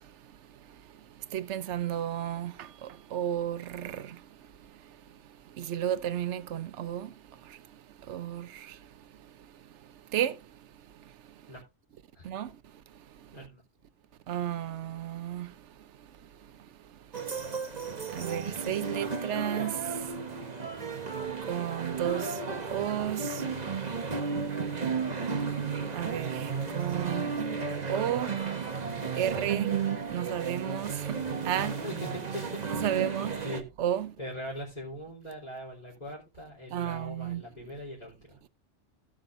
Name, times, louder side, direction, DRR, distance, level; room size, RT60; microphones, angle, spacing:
voice 1, 1.3-4.2 5.6-7.1 8.1-8.7 10.1-10.3 12.2-12.5 14.3-15.5 18.1-19.8 21.5-22.3 22.7-23.3 25.9-27.3 27.9-28.4 29.2-29.7 30.1-31.2 31.4-31.8 32.6-33.4 33.8-34.1 36.7-37.4, right 11 dB, 75° right, 1.0 m, -32 dB
sound 1, 17.1-33.6, right 5 dB, 35° right, 1.2 m, -33 dB
voice 2, 31.8-32.6 33.0-33.6 34.2-38.2, equal, 35° left, 3.9 m, -41 dB
17.0 x 6.4 x 2.6 m
omnidirectional pair, 1.2 m